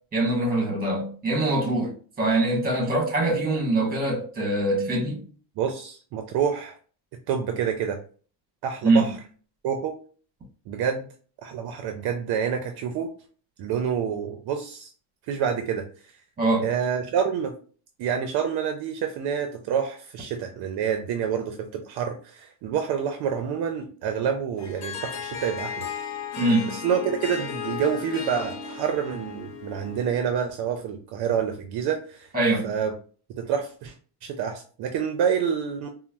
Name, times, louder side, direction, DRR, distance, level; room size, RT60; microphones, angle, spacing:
voice 1, 0.1-5.2 8.8-9.0 16.4-16.7 26.4-26.8 32.3-32.7, right 2 dB, 20° right, 1.0 m, -23 dB
voice 2, 5.6-6.7 7.3-8.0 8.6-9.2 9.6-9.9 10.7-11.1 11.4-13.1 13.6-14.9 15.3-15.8 16.6-17.5 18.0-25.9 26.7-32.3 32.6-32.9 33.4-33.9 34.2-35.9, right 7 dB, 60° right, 0.5 m, -27 dB
Harp, 24.6-30.4, left 7 dB, 40° left, 0.5 m, -35 dB
3.9 x 2.0 x 2.2 m
cardioid pair, 135°, 45 cm